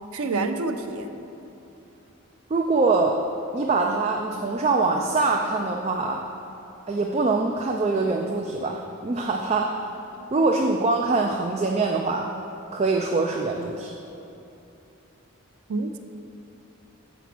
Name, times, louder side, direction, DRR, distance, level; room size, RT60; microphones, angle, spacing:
voice 1, 0.1-1.1 15.7-16.0, right 3 dB, 85° right, 7 dB, 0.5 m, -27 dB
voice 2, 2.5-3.2 3.5-6.2 6.9-9.9 10.3-12.3 12.7-13.9, right 3 dB, 30° right, 1 dB, 0.3 m, -24 dB
7.0 x 5.0 x 6.0 m, 2.9 s
head